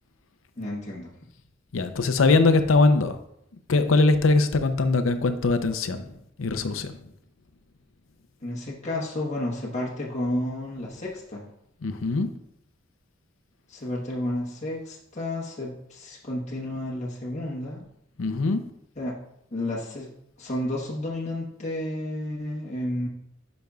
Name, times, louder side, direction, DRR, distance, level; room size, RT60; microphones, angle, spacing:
voice 1, 0.6-1.1 8.4-11.4 13.7-17.8 19.0-19.1 19.5-20.1 20.4-23.1, left 1 dB, 35° left, -4 dB, 1.2 m, -31 dB
voice 2, 1.7-3.2 3.7-6.1 6.4-7.0 11.8-12.3 18.2-18.6, left 3 dB, 90° left, 9 dB, 0.6 m, -21 dB
10.5 x 5.2 x 2.4 m, 0.77 s
head